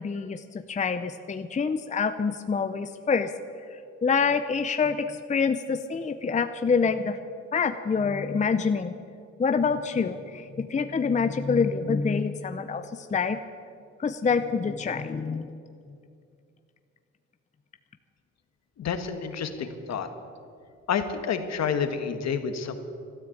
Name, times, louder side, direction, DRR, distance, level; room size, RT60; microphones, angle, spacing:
voice 1, 0.0-3.3 4.0-7.2 7.5-9.0 9.4-13.4 14.0-15.5, left 5 dB, 25° left, 9 dB, 0.6 m, -26 dB
voice 2, 18.8-20.1 20.9-22.8, left 6 dB, 60° left, 8 dB, 1.6 m, -29 dB
13.0 x 12.5 x 8.5 m, 2.4 s
cardioid pair, 90°, 30 cm